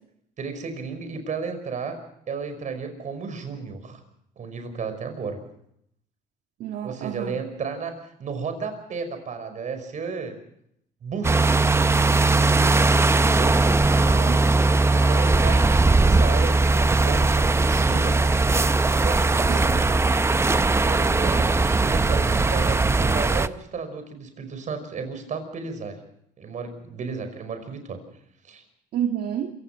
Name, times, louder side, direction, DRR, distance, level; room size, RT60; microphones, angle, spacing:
voice 1, 0.4-2.0 2.3-4.0 4.4-5.4 6.8-7.9 8.2-10.4 11.0-11.5 13.1-13.6 14.9-18.4 18.9-20.0 20.8-26.0 26.4-28.0 28.4-28.6, right 5 dB, 45° right, 8 dB, 5.5 m, -33 dB
voice 2, 6.6-7.4 13.9-14.4 19.5-19.7 28.9-29.5, right 9 dB, 65° right, 4 dB, 1.8 m, -29 dB
sound 1, 11.2-23.5, right 3 dB, 15° right, 0.7 m, -19 dB
27.0 x 17.0 x 5.9 m, 0.74 s
cardioid pair, 110°, 17 cm